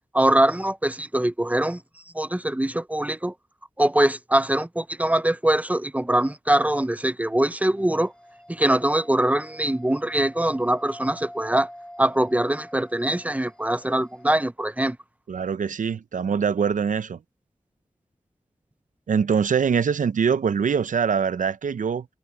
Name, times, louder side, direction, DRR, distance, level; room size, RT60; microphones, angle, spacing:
voice 1, 0.1-1.8 2.1-3.3 3.8-8.1 8.5-11.7 12.0-15.0, right 1 dB, 10° right, 0.7 m, -23 dB
sound 1, 7.8-14.3, equal, 5° left, 7.8 m, -46 dB
voice 2, 15.3-17.2 19.1-22.1, right 6 dB, 90° right, 0.6 m, -23 dB
wide cardioid pair, 85°, 13 cm